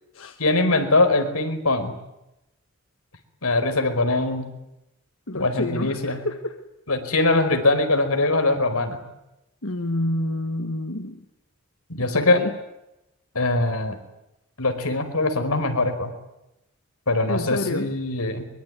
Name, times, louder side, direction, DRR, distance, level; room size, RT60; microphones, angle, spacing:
voice 1, 0.4-1.9 3.4-4.5 5.3-6.2 6.9-9.0 11.9-12.4 13.3-14.0 14.6-16.1 17.1-18.5, left 2 dB, 90° left, 7 dB, 4.6 m, -22 dB
voice 2, 5.3-6.5 9.6-11.2 12.1-12.5 17.3-17.9, left 1 dB, 70° left, 6 dB, 1.6 m, -28 dB
23.5 x 23.5 x 9.6 m, 0.90 s
head